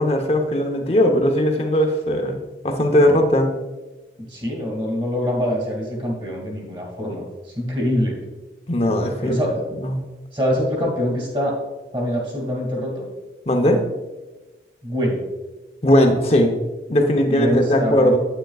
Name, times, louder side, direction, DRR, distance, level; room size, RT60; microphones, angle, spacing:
voice 1, 0.0-2.4 2.6-3.5 8.7-9.4 9.8-10.0 13.5-13.8 15.8-16.5 16.9-18.2, left 1 dB, 35° left, 4 dB, 0.8 m, -18 dB
voice 2, 4.3-7.3 7.6-8.2 9.2-9.6 10.3-11.5 11.9-13.1 14.8-15.2 17.3-18.1, equal, 30° right, -1 dB, 2.2 m, -24 dB
9.2 x 8.8 x 2.4 m, 1.1 s
head